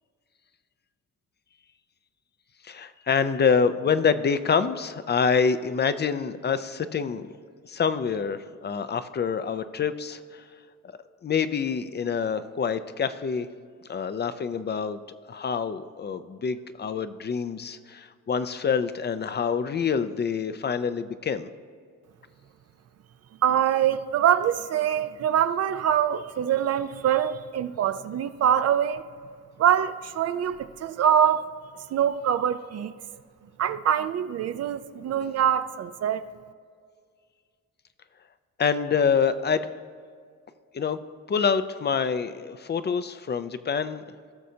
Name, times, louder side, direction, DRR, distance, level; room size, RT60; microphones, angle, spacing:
voice 1, 2.6-7.3 7.7-10.4 11.2-13.5 13.9-21.5 38.6-39.7 40.7-41.0 41.3-44.0, left 6 dB, 35° left, 0.5 m, -26 dB
voice 2, 23.4-29.0 29.6-31.4 31.9-32.9 33.6-36.2, right 9 dB, 55° right, 0.5 m, -24 dB
18.0 x 6.3 x 2.8 m
cardioid pair, 90°, 30 cm